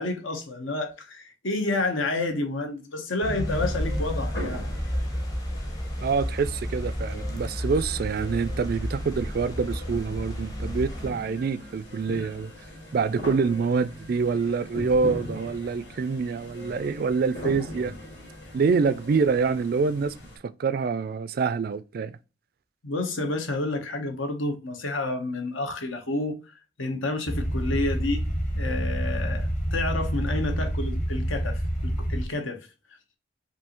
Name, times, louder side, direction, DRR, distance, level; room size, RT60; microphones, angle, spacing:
voice 1, 0.0-4.6 22.8-26.4 26.8-28.2 28.5-32.6, left 2 dB, 80° left, 1.1 m, -29 dB
sound 1, 3.2-11.1, equal, 20° left, 0.7 m, -31 dB
sound 2, 3.4-20.4, left 1 dB, 55° left, 2.2 m, -41 dB
voice 2, 6.0-12.5 12.9-17.9 18.5-20.1 20.6-22.1, right 5 dB, 50° right, 0.3 m, -26 dB
sound 3, 27.3-32.3, equal, 35° left, 1.2 m, -28 dB
5.4 x 2.7 x 3.0 m
head